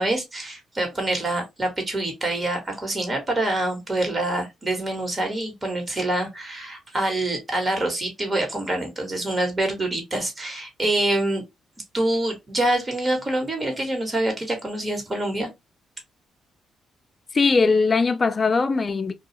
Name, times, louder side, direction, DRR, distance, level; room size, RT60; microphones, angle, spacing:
voice 1, 0.0-11.4 11.9-15.5, right 1 dB, 25° right, 1.2 m, -26 dB
voice 2, 17.3-19.1, left 4 dB, 35° left, 0.3 m, -20 dB
2.4 x 2.3 x 2.8 m
cardioid pair, 90°, 0 cm